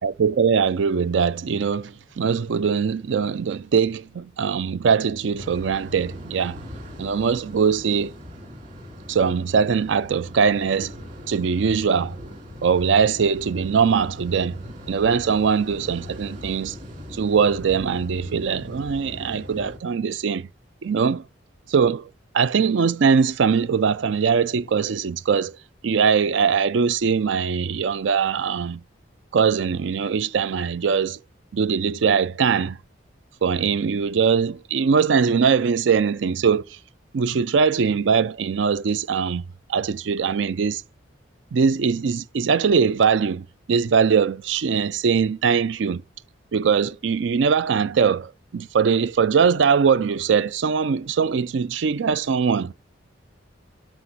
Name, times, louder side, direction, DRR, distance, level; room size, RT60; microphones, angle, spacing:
voice 1, 0.0-6.6 7.0-8.1 9.1-10.9 11.3-12.2 12.6-16.7 17.1-20.5 20.8-21.2 21.7-22.1 22.3-25.6 25.8-28.8 29.3-31.2 31.5-32.8 33.4-36.6 37.1-39.4 39.7-40.8 41.5-46.0 46.5-52.7, right 6 dB, 70° right, 0.4 m, -21 dB
sound 1, 5.4-19.8, equal, 40° right, 3.6 m, -40 dB
12.5 x 5.0 x 5.5 m
head